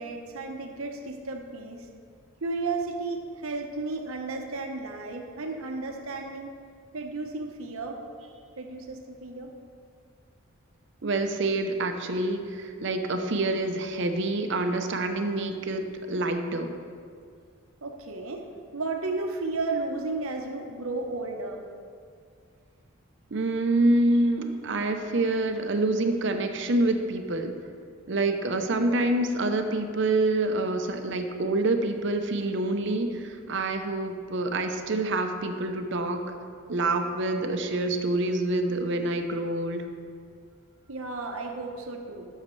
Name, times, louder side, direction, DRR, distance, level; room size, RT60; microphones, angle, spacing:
voice 1, 0.0-1.9 2.4-6.5 6.9-9.5 17.8-18.4 18.7-21.6 40.9-42.3, right 3 dB, 80° right, 3 dB, 0.9 m, -33 dB
voice 2, 11.0-16.7 23.3-27.5 28.1-36.3 36.7-39.8, right 2 dB, 55° right, 6 dB, 0.7 m, -27 dB
12.5 x 6.5 x 3.2 m, 2.2 s
head